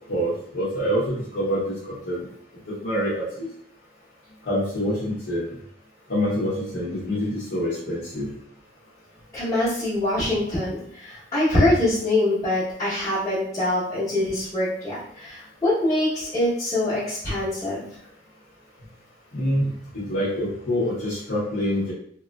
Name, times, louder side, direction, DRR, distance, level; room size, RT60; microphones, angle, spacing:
voice 1, 0.1-2.3 2.7-3.5 4.4-5.6 6.1-8.3 19.3-21.9, equal, 85° left, -9 dB, 0.8 m, -26 dB
voice 2, 9.3-17.9, left 1 dB, 20° left, -13 dB, 0.9 m, -24 dB
3.0 x 2.3 x 2.2 m, 0.65 s
head